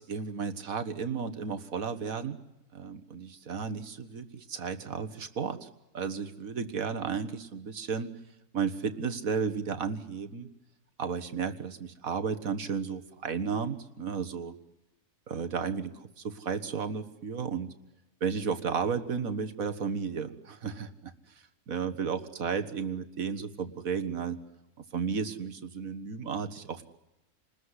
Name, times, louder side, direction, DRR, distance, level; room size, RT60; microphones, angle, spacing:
voice 1, 0.0-2.4 2.7-5.7 5.9-8.1 8.5-10.5 11.0-14.6 15.3-17.7 18.2-21.1 21.7-24.4 24.8-26.8, right 6 dB, 60° right, 9 dB, 2.0 m, -33 dB
28.0 x 21.0 x 9.9 m, 0.94 s
omnidirectional pair, 1.7 m